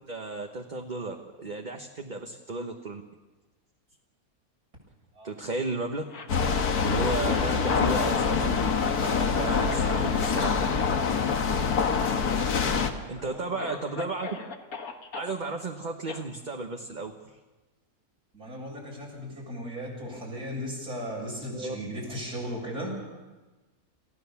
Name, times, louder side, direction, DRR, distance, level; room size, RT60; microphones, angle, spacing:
voice 1, 0.1-3.0 5.2-6.0 6.8-8.7 9.0-10.6 13.1-14.4 15.1-17.1 21.5-21.7, right 3 dB, 35° right, 3 dB, 1.2 m, -34 dB
Cough, 6.0-7.9 8.1-10.8 11.1-11.4 11.7-11.9 12.2-12.7 13.2-13.3 13.6-15.3 16.1-16.2, left 4 dB, 70° left, 1.9 m, -39 dB
sound 1, 6.3-12.9, left 5 dB, 85° left, 1.9 m, -25 dB
voice 2, 12.8-13.7 18.3-23.2, equal, 80° right, -3 dB, 7.9 m, -37 dB
28.5 x 15.5 x 7.1 m, 1.2 s
omnidirectional pair, 1.6 m